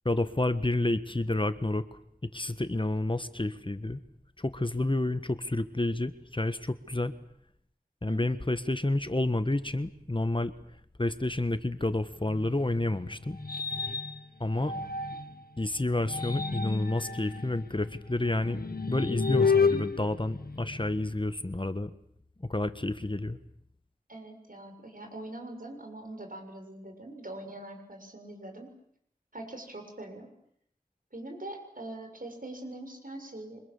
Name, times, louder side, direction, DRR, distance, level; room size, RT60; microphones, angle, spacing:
voice 1, 0.0-1.8 2.3-4.0 4.4-7.1 8.0-10.5 11.0-13.4 14.4-14.7 15.6-18.6 18.9-21.9 22.5-23.4, left 2 dB, 35° left, 12 dB, 1.4 m, -29 dB
sound 1, 12.3-15.4 15.9-21.1, left 5 dB, 80° left, 1.7 m, -31 dB
voice 2, 24.1-28.7 29.3-30.3 31.1-33.6, right 1 dB, 65° right, 4 dB, 6.6 m, -43 dB
28.0 x 25.5 x 7.2 m, 0.69 s
wide cardioid pair, 50°, 16 cm